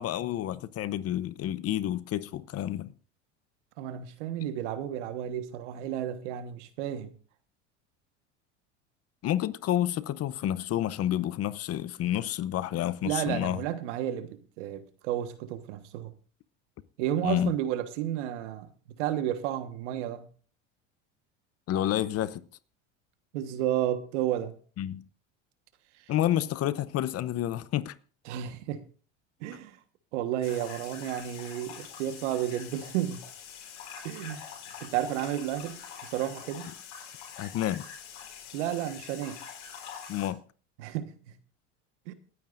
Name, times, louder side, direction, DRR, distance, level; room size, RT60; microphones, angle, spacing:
voice 1, 0.0-2.9 9.2-13.6 17.2-17.5 21.7-22.4 24.8-25.0 26.1-27.9 37.4-37.8 40.1-40.4, left 12 dB, 45° left, 0.7 m, -29 dB
voice 2, 3.8-7.1 13.0-16.1 17.0-18.7 19.0-20.3 23.3-24.6 28.2-28.8 29.4-29.8 30.1-33.2 34.0-34.5 34.8-36.7 38.5-39.4 40.8-41.4 42.1-42.2, right 11 dB, 75° right, 1.4 m, -32 dB
sound 1, 30.4-40.3, left 7 dB, 75° left, 4.2 m, -45 dB
27.5 x 9.4 x 2.6 m
hypercardioid pair, 90°, 35 cm